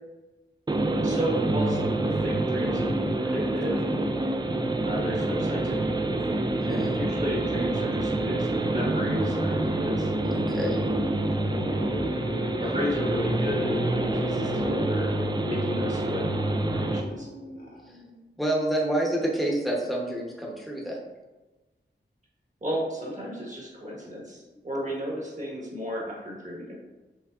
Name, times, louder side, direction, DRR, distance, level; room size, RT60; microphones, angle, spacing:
sound 1, 0.7-17.0, right 2 dB, 25° right, 0.4 m, -27 dB
voice 1, 1.0-3.8 4.8-6.3 6.6-10.1 12.6-16.3 16.7-17.3 22.6-26.8, equal, 40° right, -3 dB, 1.4 m, -33 dB
sound 2, 7.3-18.2, left 1 dB, 55° left, 1.1 m, -37 dB
voice 2, 10.3-10.9 17.9-18.0 18.4-21.0, right 1 dB, ahead, -2 dB, 0.9 m, -28 dB
5.4 x 3.4 x 2.4 m, 1.1 s
wide cardioid pair, 90°, 19 cm